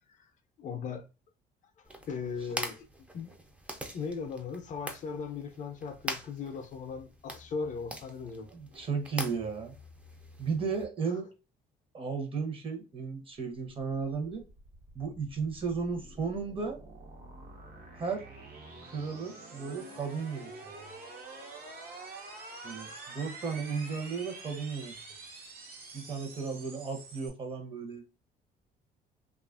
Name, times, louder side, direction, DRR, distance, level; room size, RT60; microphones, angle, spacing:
voice 1, 0.6-1.1 2.1-2.8 3.1-3.3 3.9-8.5, left 5 dB, 45° left, 0.5 m, -38 dB
sound 1, 1.8-10.8, equal, 5° right, 0.4 m, -43 dB
voice 2, 8.5-9.7 10.4-11.3 11.9-14.4 14.9-16.8 17.9-18.2 18.8-20.7 22.6-24.9 25.9-28.0, right 5 dB, 30° right, 0.8 m, -34 dB
sound 2, 14.3-27.3, right 3 dB, 60° right, 0.9 m, -47 dB
2.7 x 2.4 x 2.4 m
cardioid pair, 110°, 17 cm